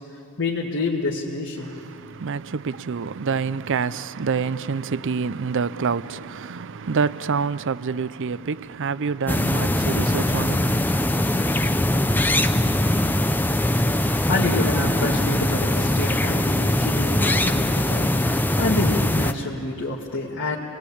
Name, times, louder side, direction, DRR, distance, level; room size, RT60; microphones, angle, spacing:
voice 1, 0.4-1.7 13.8-20.6, left 2 dB, 60° left, 2.0 m, -27 dB
voice 2, 1.6-11.1, right 5 dB, 60° right, 0.5 m, -27 dB
sound 1, 9.3-19.3, left 1 dB, 10° left, 0.6 m, -21 dB
29.0 x 20.0 x 8.6 m
head